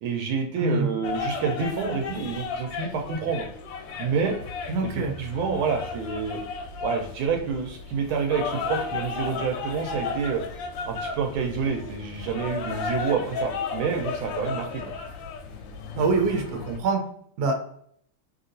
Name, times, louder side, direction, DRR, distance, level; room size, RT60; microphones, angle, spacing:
voice 1, 0.0-3.4 4.0-4.4 4.8-6.4 6.8-10.4 10.9-14.8, right 6 dB, 85° right, 3 dB, 1.4 m, -28 dB
sound 1, 1.0-16.8, left 4 dB, 75° left, 1.3 m, -34 dB
voice 2, 4.7-5.1 15.9-17.0 17.4-17.6, right 3 dB, 60° right, 2 dB, 1.0 m, -24 dB
3.1 x 2.8 x 2.6 m, 0.66 s
omnidirectional pair, 2.2 m